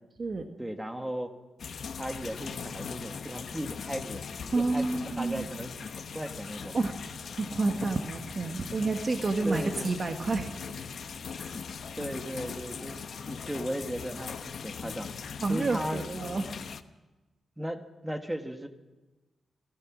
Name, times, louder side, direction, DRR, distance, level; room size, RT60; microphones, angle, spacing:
voice 1, 0.6-1.3 2.0-6.8 9.4-9.9 11.5-13.0 13.2-15.1 15.5-16.0 17.6-18.7, equal, 10° right, 6 dB, 1.5 m, -36 dB
sound 1, 1.6-16.8, left 6 dB, 60° left, 1.0 m, -40 dB
voice 2, 4.5-5.5 6.7-6.9 7.3-10.5 11.4-11.6 15.4-16.5, right 3 dB, 35° right, 5 dB, 1.3 m, -29 dB
29.0 x 17.0 x 6.1 m, 1.1 s
wide cardioid pair, 145°, 0 cm